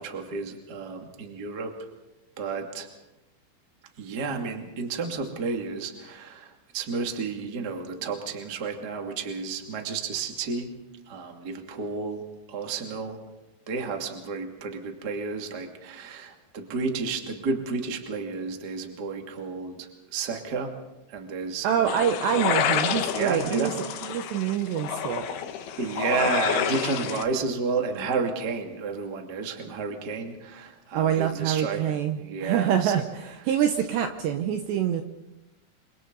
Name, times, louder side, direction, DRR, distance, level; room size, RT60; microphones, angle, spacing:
voice 1, 0.0-1.7 2.4-2.9 4.0-10.7 11.1-13.2 13.7-20.7 21.1-22.0 22.3-22.5 23.1-23.7 25.8-32.9, right 4 dB, 35° right, 3 dB, 1.6 m, -31 dB
voice 2, 21.6-23.7 24.0-25.3 30.9-35.0, right 9 dB, 75° right, 6 dB, 2.7 m, -26 dB
sound 1, 21.9-27.2, left 9 dB, 70° left, 2.6 m, -29 dB
28.5 x 25.5 x 4.0 m, 0.99 s
omnidirectional pair, 5.9 m